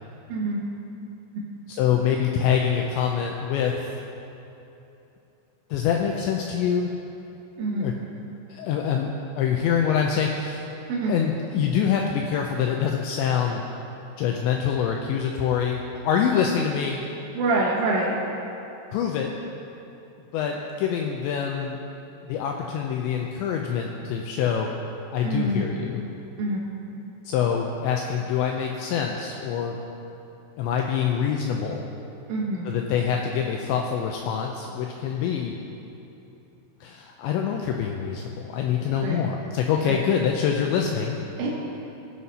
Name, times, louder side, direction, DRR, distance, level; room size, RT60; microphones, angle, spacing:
voice 1, 0.3-0.6 1.3-1.5 7.6-7.9 10.9-11.1 17.3-18.1 25.2-25.7 26.4-26.6 32.3-32.7 39.0-39.2 39.9-40.0 41.4-41.5, right 2 dB, 75° right, -6 dB, 3.9 m, -26 dB
voice 2, 1.7-3.9 5.7-6.9 7.8-7.9 8.5-9.1 9.4-10.7 11.1-13.6 14.2-17.0 18.9-19.3 20.3-21.8 22.2-24.7 25.1-26.0 27.3-29.8 30.6-31.9 32.7-35.6 36.8-41.2, left 7 dB, 85° left, 1 dB, 2.6 m, -25 dB
19.5 x 9.5 x 4.2 m, 2.9 s
omnidirectional pair, 5.9 m